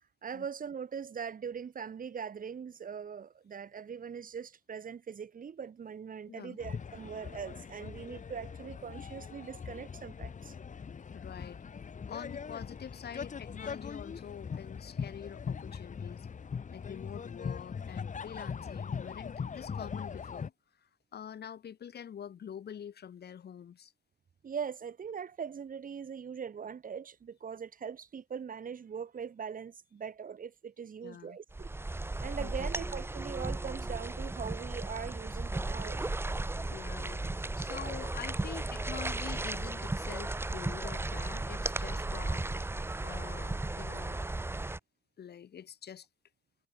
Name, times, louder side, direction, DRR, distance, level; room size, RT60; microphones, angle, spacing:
voice 1, 0.2-10.6 24.4-31.7 32.2-36.2, right 7 dB, 55° right, 5.4 m, -41 dB
voice 2, 6.3-6.6 11.1-11.6 12.1-16.3 16.7-20.5 20.8-23.9 31.0-31.4 32.4-32.8 36.7-37.2 37.6-42.6 43.0-44.2 45.2-46.1, left 8 dB, 70° left, 4.9 m, -46 dB
sound 1, 6.6-20.5, left 6 dB, 45° left, 4.2 m, -41 dB
sound 2, 31.5-44.8, right 2 dB, 15° right, 1.4 m, -35 dB
wide cardioid pair, 145°, 17 cm